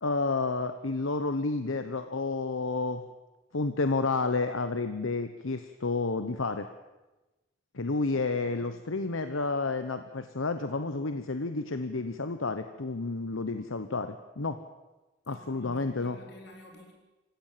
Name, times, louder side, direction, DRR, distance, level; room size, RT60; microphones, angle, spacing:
voice 1, 0.0-3.0 3.5-6.7 7.7-14.6 15.3-16.2, left 3 dB, 75° left, 9 dB, 1.0 m, -30 dB
voice 2, 8.1-8.7 15.2-16.9, left 1 dB, 55° left, 1 dB, 4.7 m, -51 dB
26.5 x 16.0 x 7.5 m, 1.1 s
head